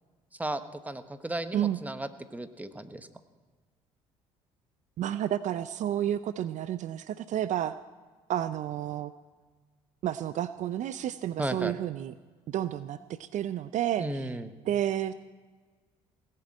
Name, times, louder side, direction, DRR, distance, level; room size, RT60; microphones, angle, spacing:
voice 1, 0.3-3.1 11.4-11.8 14.0-14.5, right 1 dB, 10° right, 10 dB, 1.2 m, -35 dB
voice 2, 5.0-7.8 8.3-9.1 10.0-12.1 12.5-14.3 14.7-15.1, right 11 dB, 55° right, 14 dB, 0.5 m, -31 dB
18.0 x 7.6 x 8.8 m, 1.4 s
hypercardioid pair, 65°, 15 cm